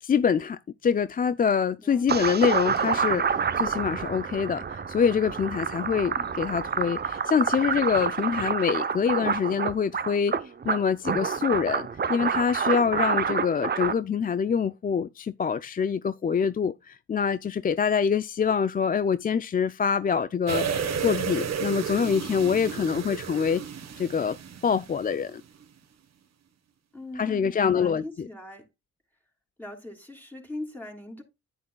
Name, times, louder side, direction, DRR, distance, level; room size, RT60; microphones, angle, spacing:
voice 1, 0.0-23.6 24.0-24.4 24.6-25.4 27.2-28.3, left 6 dB, 30° left, 0.4 m, -25 dB
voice 2, 1.8-2.4 26.9-28.7 29.6-31.2, left 1 dB, 5° left, 3.1 m, -41 dB
sound 1, 2.1-13.9, right 6 dB, 35° right, 0.7 m, -28 dB
sound 2, 20.5-25.3 25.6-25.7, right 7 dB, 60° right, 1.3 m, -32 dB
10.0 x 8.7 x 2.2 m
cardioid pair, 65°, 30 cm